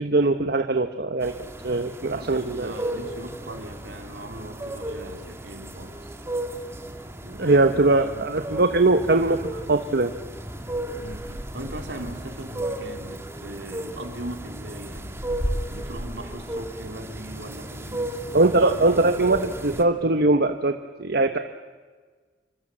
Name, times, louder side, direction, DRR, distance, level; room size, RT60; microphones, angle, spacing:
voice 1, 0.0-1.3 1.6-2.7 7.4-9.4 9.7-10.1 18.3-21.4, right 2 dB, 60° right, 7 dB, 1.1 m, -21 dB
sound 1, 1.2-19.8, right 1 dB, 15° right, 2.3 m, -34 dB
voice 2, 2.1-6.2 7.2-8.8 11.0-15.3 15.7-18.9, right 1 dB, 75° right, 4 dB, 3.7 m, -39 dB
28.0 x 25.0 x 7.5 m, 1.5 s
head